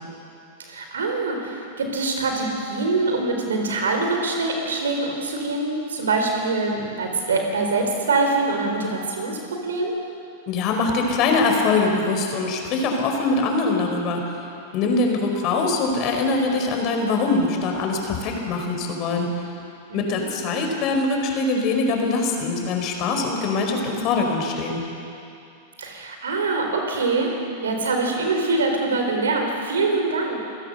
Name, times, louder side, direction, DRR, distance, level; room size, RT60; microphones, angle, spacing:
voice 1, 0.6-9.4 9.6-9.9 19.9-20.2 25.8-27.3 27.6-30.4, right 3 dB, 85° right, 2 dB, 4.3 m, -24 dB
voice 2, 10.5-14.2 14.7-19.3 19.9-24.8, left 3 dB, 45° left, 3 dB, 4.6 m, -23 dB
28.0 x 15.5 x 6.6 m, 2.6 s
hypercardioid pair, 105°, 0 cm